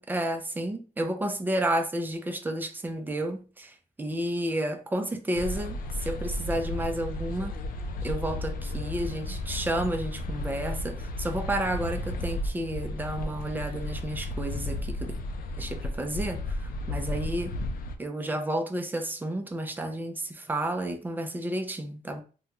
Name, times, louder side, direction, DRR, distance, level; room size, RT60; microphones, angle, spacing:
voice 1, 0.0-3.7 4.0-7.5 8.0-15.1 15.6-16.4 16.9-17.5 18.0-22.2, right 1 dB, 15° right, 0.5 m, -31 dB
sound 1, 5.3-18.0, left 1 dB, 70° left, 0.5 m, -33 dB
3.6 x 2.2 x 2.9 m
cardioid pair, 120°, 15 cm